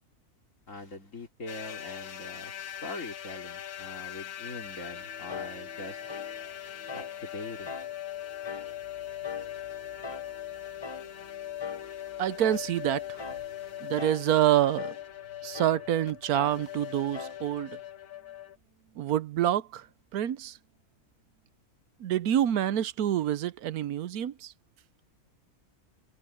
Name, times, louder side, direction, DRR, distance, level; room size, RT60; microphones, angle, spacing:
voice 1, 0.7-6.0 6.9-7.8, left 3 dB, 60° left, 3.8 m, -42 dB
sound 1, 1.5-18.6, left 12 dB, 80° left, 1.6 m, -41 dB
sound 2, 4.8-21.5, right 3 dB, 50° right, 4.0 m, -59 dB
sound 3, 5.3-5.6 6.1-6.4 6.9-7.2 7.7-7.9 8.4-8.8 9.2-9.5 10.0-10.3 10.8-11.1 11.6-11.9 12.4-12.7 13.2-13.5 14.0-14.3 14.8-15.0 15.5-15.8 16.3-16.6 17.1-17.4, left 5 dB, 40° left, 0.3 m, -40 dB
voice 2, 12.2-13.2 13.8-14.9 15.4-17.8 19.0-19.9 20.1-20.6 22.0-24.5, right 11 dB, 85° right, 1.2 m, -27 dB
omnidirectional pair, 1.6 m